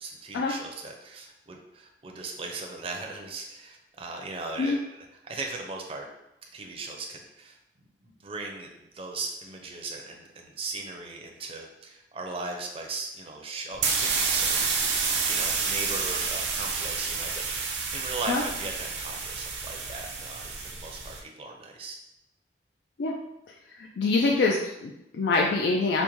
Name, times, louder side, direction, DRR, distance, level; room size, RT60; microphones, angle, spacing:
voice 1, 0.0-6.1 6.5-7.6 8.0-15.0 15.3-21.9, right 3 dB, 35° right, 1 dB, 0.5 m, -38 dB
sound 1, 13.7-21.2, right 5 dB, 85° right, 0.6 m, -29 dB
voice 2, 23.7-26.0, left 3 dB, 75° left, -1 dB, 0.4 m, -25 dB
5.0 x 2.1 x 3.0 m, 0.87 s
head